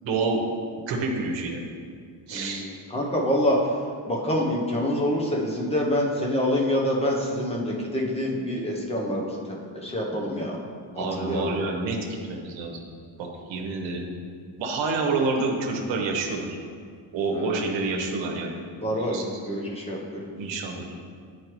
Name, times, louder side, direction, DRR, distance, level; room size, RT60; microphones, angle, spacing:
voice 1, 0.0-0.4 0.9-1.6 2.3-2.7 11.0-12.8 13.2-14.1 14.6-16.5 17.1-18.6 19.0-19.2 20.3-21.0, right 3 dB, 70° right, 0 dB, 1.0 m, -28 dB
voice 2, 2.3-3.7 4.1-9.4 9.7-10.6 10.9-11.5 17.3-17.7 18.8-20.0, equal, 15° left, -2 dB, 0.7 m, -26 dB
9.4 x 4.7 x 3.0 m, 2.1 s
cardioid pair, 175°, 47 cm